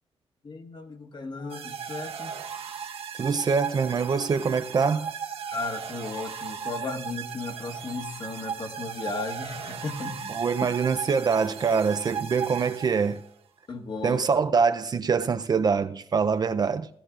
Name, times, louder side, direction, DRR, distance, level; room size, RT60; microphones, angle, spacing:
voice 1, 0.4-2.3 5.5-10.4 13.7-14.2, left 3 dB, 45° left, 1.5 m, -35 dB
sound 1, 1.5-13.3, right 7 dB, 60° right, 1.1 m, -37 dB
voice 2, 3.1-5.1 10.3-13.2 14.0-16.9, right 5 dB, 40° right, 0.5 m, -24 dB
17.0 x 16.0 x 2.5 m
wide cardioid pair, 145°, 11 cm